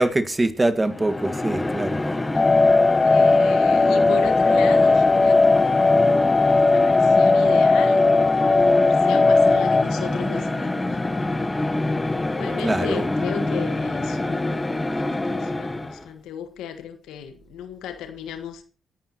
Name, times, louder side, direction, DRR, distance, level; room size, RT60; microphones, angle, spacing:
voice 1, 0.0-2.0 12.6-13.0, right 2 dB, 20° right, 1.8 m, -23 dB
sound 1, 0.8-16.1, left 2 dB, 20° left, 1.4 m, -26 dB
sound 2, 2.3-9.8, left 3 dB, 35° left, 0.8 m, -17 dB
voice 2, 3.0-6.1 6.3-11.5 12.2-18.6, left 8 dB, 85° left, 1.5 m, -36 dB
27.5 x 11.0 x 3.0 m
supercardioid pair, 50°, 0 cm